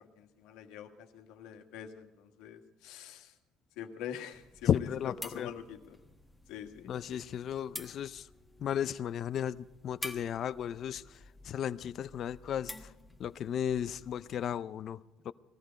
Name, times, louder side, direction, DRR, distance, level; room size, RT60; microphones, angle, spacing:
voice 1, 0.0-3.3 3.8-4.7 5.0-6.0 6.5-6.9, left 9 dB, 85° left, 1.6 m, -45 dB
sound 1, 4.3-14.6, left 1 dB, 5° left, 1.3 m, -49 dB
voice 2, 4.7-5.5 6.8-8.3 8.6-12.9 13.2-15.3, left 9 dB, 55° left, 0.4 m, -34 dB
19.0 x 14.0 x 5.2 m
cardioid pair, 105°, 0 cm